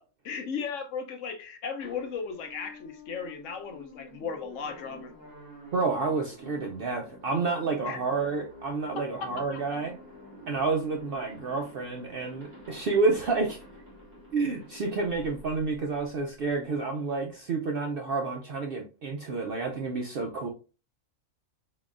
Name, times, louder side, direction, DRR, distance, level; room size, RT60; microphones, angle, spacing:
voice 1, 0.2-5.1 7.9-8.0 9.2-9.6, left 6 dB, 65° left, 1.0 m, -36 dB
sound 1, 1.8-16.5, left 1 dB, 15° right, 1.8 m, -49 dB
voice 2, 5.7-10.0 10.5-13.6 14.3-20.5, right 4 dB, 65° right, 0.5 m, -29 dB
3.8 x 3.6 x 2.4 m
omnidirectional pair, 1.5 m